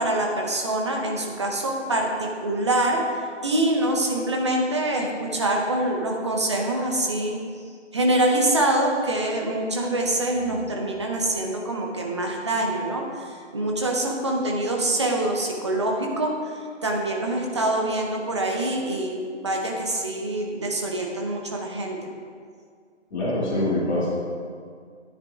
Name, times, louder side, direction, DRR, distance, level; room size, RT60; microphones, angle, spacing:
voice 1, 0.0-3.0 3.4-7.4 7.9-22.0, right 1 dB, 25° right, 0 dB, 0.8 m, -25 dB
voice 2, 23.1-24.1, left 1 dB, 40° left, -11 dB, 2.5 m, -24 dB
13.0 x 9.6 x 2.4 m, 2.1 s
figure-of-eight pair, 160°, 36 cm